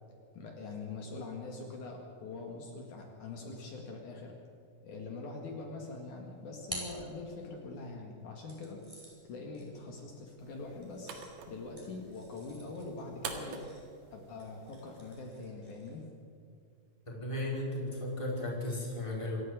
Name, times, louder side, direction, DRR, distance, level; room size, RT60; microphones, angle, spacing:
voice 1, 0.3-4.3 4.8-8.8 9.2-11.1 11.5-13.6 14.1-16.1, left 3 dB, 65° left, 1 dB, 3.4 m, -43 dB
sound 1, 6.2-7.8 8.5-16.1, equal, 10° right, 4.9 m, -50 dB
sound 2, 10.4-15.4, right 5 dB, 75° right, 3.4 m, -47 dB
voice 2, 17.1-19.4, left 1 dB, 10° left, -3 dB, 4.9 m, -35 dB
26.5 x 11.0 x 9.3 m, 2.4 s
omnidirectional pair, 3.8 m